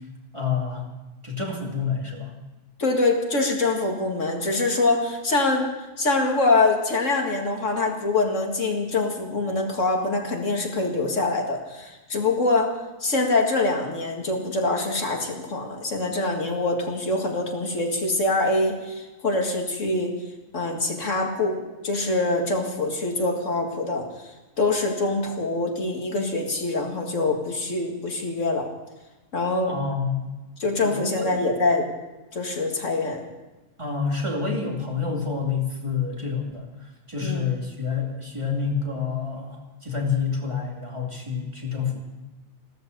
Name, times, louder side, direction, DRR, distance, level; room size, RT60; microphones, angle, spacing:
voice 1, 0.3-0.8 1.2-2.3 29.7-30.3 30.8-31.4 33.8-36.7 37.1-42.0, left 5 dB, 25° right, -1 dB, 2.6 m, -28 dB
voice 2, 2.8-5.7 6.0-12.7 13.0-20.1 20.5-24.1 24.6-28.7 29.3-29.7 30.6-31.9 32.3-33.2 37.2-37.4, left 2 dB, 70° left, 1 dB, 2.4 m, -24 dB
16.0 x 13.0 x 6.7 m, 1.1 s
omnidirectional pair, 1.4 m